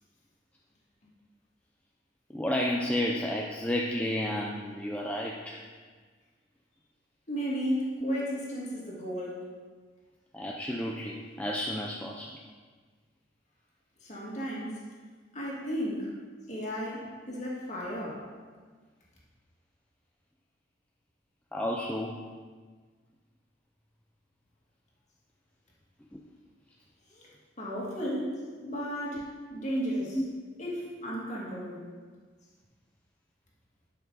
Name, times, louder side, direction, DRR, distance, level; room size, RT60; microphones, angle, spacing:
voice 1, 2.3-5.6 8.0-8.3 10.3-12.3 21.5-22.2 29.1-29.2 30.1-30.2, left 1 dB, 5° left, -2 dB, 0.4 m, -31 dB
voice 2, 7.3-9.4 14.1-14.8 15.3-16.1 16.5-18.2 27.2-27.3 27.6-30.2 30.6-31.8, equal, 40° left, -5 dB, 2.0 m, -34 dB
11.0 x 5.8 x 3.9 m, 1.5 s
head